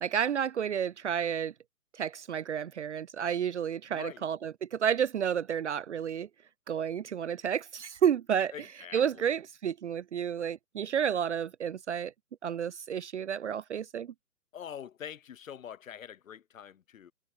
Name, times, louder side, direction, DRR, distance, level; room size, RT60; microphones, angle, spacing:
voice 1, 0.0-1.5 1.9-6.3 6.7-8.5 8.9-12.1 12.4-14.1, right 8 dB, 50° right, 0.6 m, -31 dB
voice 2, 3.9-4.3 8.5-9.3 14.5-17.1, left 9 dB, 55° left, 3.4 m, -44 dB
figure-of-eight pair, 140°, 48 cm